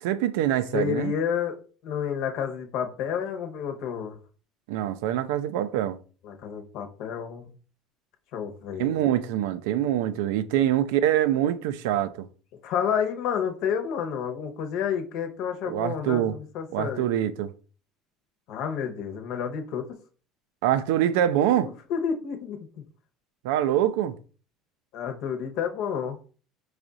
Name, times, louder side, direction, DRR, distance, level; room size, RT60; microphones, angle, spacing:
voice 1, 0.0-1.1 4.7-6.0 8.8-12.3 15.7-16.4 16.7-17.5 20.6-21.7 23.4-24.2, right 11 dB, 80° right, 0.4 m, -24 dB
voice 2, 0.7-4.2 6.2-7.5 8.3-9.1 10.5-10.7 12.6-17.1 18.5-20.0 21.6-22.8 24.9-26.2, left 7 dB, 65° left, 1.0 m, -30 dB
4.9 x 2.4 x 3.8 m
supercardioid pair, 85°, 0 cm